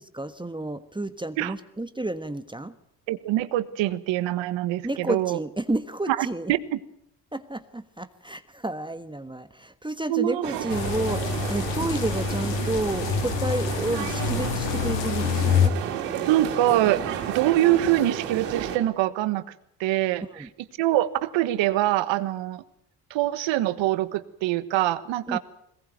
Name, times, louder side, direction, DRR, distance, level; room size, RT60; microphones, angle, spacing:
voice 1, 0.0-2.7 4.8-6.5 7.3-15.8 20.3-20.5 25.3-25.4, right 2 dB, 10° right, 11 dB, 1.4 m, -31 dB
voice 2, 3.1-5.4 6.1-6.8 10.1-10.4 16.3-17.0 17.3-19.4 19.8-20.4 20.8-22.6 23.1-25.4, right 14 dB, 70° right, 14 dB, 1.5 m, -24 dB
sound 1, 10.4-18.8, right 9 dB, 90° right, 3.0 m, -32 dB
sound 2, 10.7-15.7, left 7 dB, 65° left, 1.9 m, -26 dB
21.5 x 18.5 x 9.1 m, 0.74 s
hypercardioid pair, 65°, 47 cm